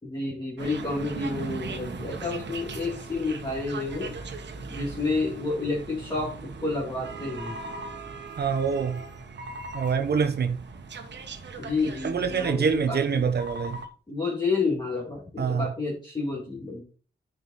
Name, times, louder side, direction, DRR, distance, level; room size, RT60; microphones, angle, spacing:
voice 1, 0.0-4.1 4.7-7.6 11.6-13.2 14.1-16.8, left 3 dB, 25° left, 2.3 m, -30 dB
sound 1, 0.6-13.9, right 3 dB, 85° right, 1.3 m, -39 dB
voice 2, 8.4-9.0 9.7-10.6 12.0-13.8 15.4-15.7, right 6 dB, 65° right, 0.9 m, -25 dB
9.7 x 5.1 x 4.1 m
wide cardioid pair, 115°, 18 cm